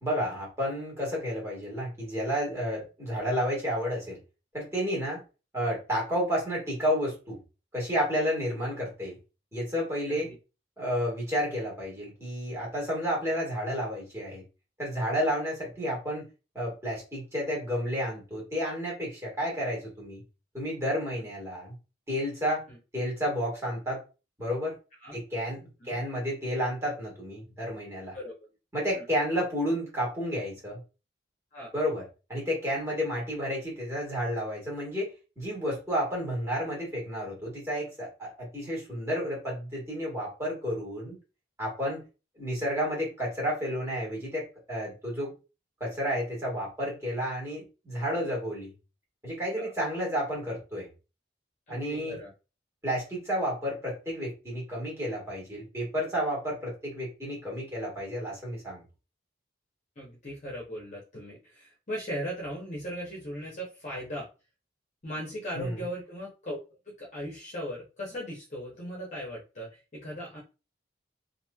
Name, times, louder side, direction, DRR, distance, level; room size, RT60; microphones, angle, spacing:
voice 1, 0.0-4.2 4.5-5.2 5.5-7.4 7.7-9.2 9.5-10.3 10.8-14.4 14.8-16.3 16.5-20.2 20.5-21.7 22.1-22.6 22.9-24.0 24.4-24.8 25.1-28.2 28.7-30.8 31.7-32.0 32.3-41.2 41.6-42.0 42.4-45.3 45.8-48.7 49.2-50.9 51.7-52.2 52.8-58.8 65.5-65.9, equal, 15° right, -4 dB, 1.4 m, -31 dB
voice 2, 51.7-52.3 60.0-64.3 65.0-66.6 67.0-70.4, equal, 40° left, -4 dB, 0.7 m, -38 dB
3.0 x 2.5 x 2.2 m, 0.31 s
head